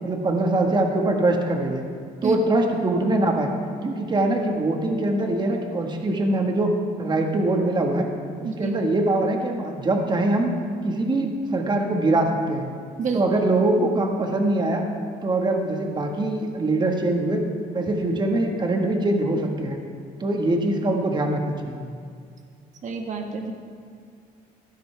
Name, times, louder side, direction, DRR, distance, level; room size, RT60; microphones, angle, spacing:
voice 1, 0.0-1.8 2.2-3.5 3.8-6.7 7.0-8.1 8.4-10.6 10.8-12.7 13.1-14.8 15.2-17.5 17.7-19.8 20.2-21.8, right 2 dB, 25° right, 2 dB, 1.6 m, -23 dB
voice 2, 8.4-8.7 13.0-13.2 22.8-23.5, right 5 dB, 45° right, 3 dB, 1.5 m, -28 dB
15.5 x 13.0 x 3.4 m, 2.2 s
cardioid pair, 110°, 17 cm